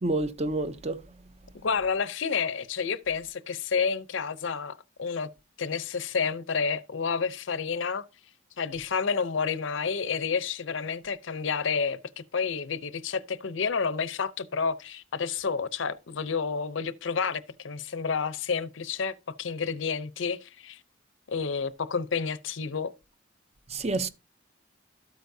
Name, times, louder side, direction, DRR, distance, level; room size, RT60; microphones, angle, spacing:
voice 1, 0.0-1.0 23.7-24.1, right 2 dB, 30° right, 0.6 m, -28 dB
voice 2, 1.6-5.3 5.6-8.0 8.6-20.8 21.3-22.9, left 5 dB, 75° left, 0.6 m, -30 dB
12.5 x 8.1 x 2.7 m
head